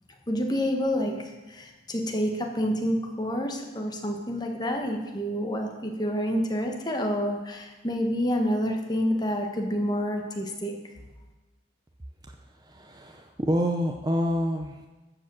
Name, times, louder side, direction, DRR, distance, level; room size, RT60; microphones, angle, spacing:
voice 1, 0.3-10.7, equal, 20° left, 2 dB, 1.2 m, -28 dB
voice 2, 12.3-14.9, equal, 20° right, 4 dB, 0.5 m, -28 dB
12.5 x 5.1 x 7.5 m, 1.2 s
head